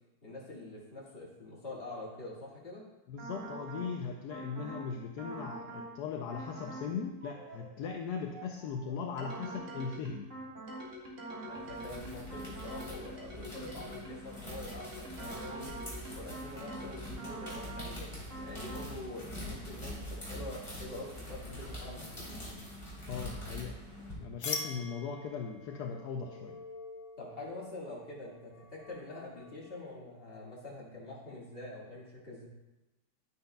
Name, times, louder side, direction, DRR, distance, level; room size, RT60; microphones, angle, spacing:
voice 1, 0.2-2.8 11.4-15.7 16.1-22.1 27.2-32.5, left 2 dB, 30° left, -5 dB, 2.1 m, -45 dB
voice 2, 3.1-10.3 23.1-26.6, left 6 dB, 75° left, 3 dB, 1.1 m, -39 dB
sound 1, 3.2-3.9 4.3-4.9 5.2-5.9 6.3-6.9 7.2-14.3 14.7-17.9 18.3-18.9, right 1 dB, 45° right, 2.0 m, -45 dB
sound 2, 11.5-24.1, equal, 15° left, 3.3 m, -44 dB
sound 3, 24.4-30.0, left 4 dB, 50° left, 0.9 m, -44 dB
10.5 x 9.4 x 2.3 m, 1.0 s
omnidirectional pair, 1.9 m